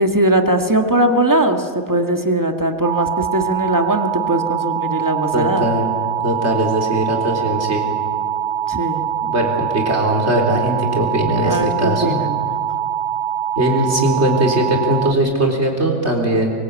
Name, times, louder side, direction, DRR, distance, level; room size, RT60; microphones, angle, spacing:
voice 1, 0.0-5.7 7.4-7.5 8.7-9.0 11.4-12.5, right 1 dB, 15° right, 5 dB, 1.7 m, -19 dB
sound 1, 2.8-15.1, right 9 dB, 90° right, 1.3 m, -23 dB
voice 2, 5.3-5.9 6.2-7.9 9.2-12.2 13.6-16.5, right 1 dB, 60° right, 1 dB, 4.2 m, -19 dB
24.0 x 23.5 x 8.4 m, 2.1 s
omnidirectional pair, 1.3 m